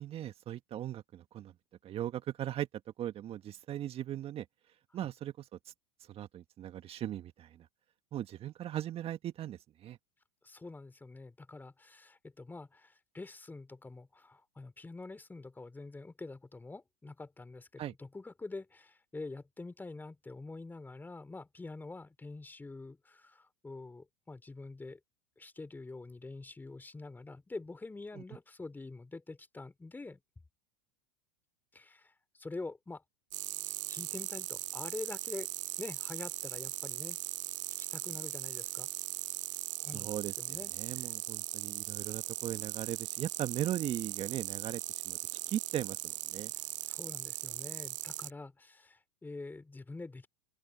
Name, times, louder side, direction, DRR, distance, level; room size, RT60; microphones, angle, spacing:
voice 1, 0.0-1.5 1.8-2.7 3.0-4.5 4.9-5.7 6.1-7.7 8.1-10.0 17.8-17.9 28.2-28.3 39.9-45.2 45.5-46.5, right 12 dB, 35° right, 1.7 m, -38 dB
voice 2, 10.4-25.0 25.4-30.2 31.7-33.0 33.6-35.5 35.8-37.2 37.8-38.9 39.8-40.1 40.4-41.1 46.5-50.3, left 3 dB, 10° left, 3.8 m, -46 dB
sound 1, 33.3-48.3, right 16 dB, 70° right, 1.0 m, -39 dB
open air
hypercardioid pair, 95°, 17 cm